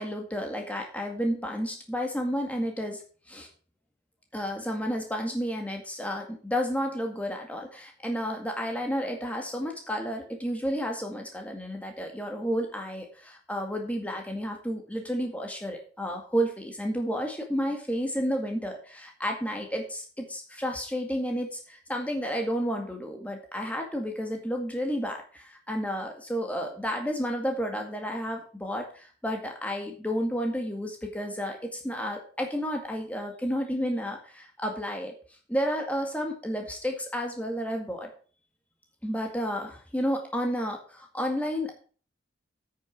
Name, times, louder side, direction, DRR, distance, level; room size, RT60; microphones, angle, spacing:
voice 1, 0.0-3.0 3.3-3.5 4.3-35.1 35.5-38.1 39.0-41.8, equal, 5° left, 2 dB, 1.9 m, -31 dB
9.3 x 6.7 x 5.9 m, 0.41 s
head